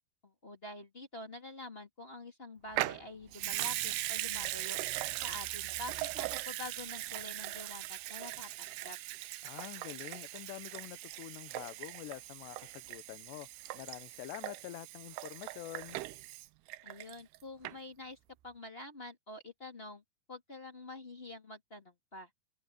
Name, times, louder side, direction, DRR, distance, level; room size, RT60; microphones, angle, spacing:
voice 1, 0.2-4.8 5.2-9.0 16.8-18.2 18.4-20.0 20.3-22.3, left 2 dB, 20° left, 1.8 m, -47 dB
Water tap faucet / Sink (filling or washing) / Liquid, 2.7-17.4 17.6-17.7, right 17 dB, 85° right, 2.7 m, -39 dB
voice 2, 9.4-13.5 13.7-16.0, left 16 dB, 85° left, 3.0 m, -46 dB
omnidirectional pair, 4.9 m